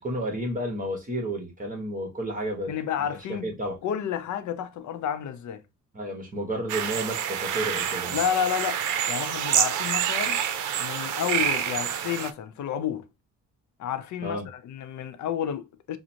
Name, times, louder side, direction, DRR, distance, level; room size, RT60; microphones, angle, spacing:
voice 1, 0.0-2.7 3.0-3.8 5.9-8.2 14.2-14.5, right 1 dB, 25° right, 1.3 m, -31 dB
voice 2, 2.7-5.6 8.1-10.4 10.8-13.1 13.8-16.0, left 9 dB, 70° left, 0.7 m, -31 dB
sound 1, 6.7-12.3, right 9 dB, 90° right, 0.6 m, -27 dB
6.1 x 2.1 x 2.8 m
cardioid pair, 90°, 30 cm